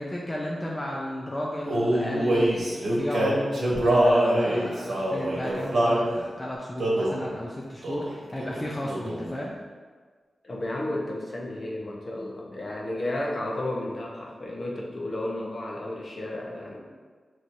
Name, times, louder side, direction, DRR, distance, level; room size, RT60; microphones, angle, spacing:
voice 1, 0.0-9.5, left 1 dB, 20° left, -3 dB, 0.5 m, -33 dB
Male singing, 1.6-6.1 6.8-7.2 7.8-8.1 8.4-9.3, right 1 dB, 75° right, 1.1 m, -24 dB
voice 2, 10.4-16.8, left 1 dB, 50° left, -2 dB, 0.9 m, -32 dB
6.0 x 3.0 x 2.7 m, 1.5 s
wide cardioid pair, 85°, 0 cm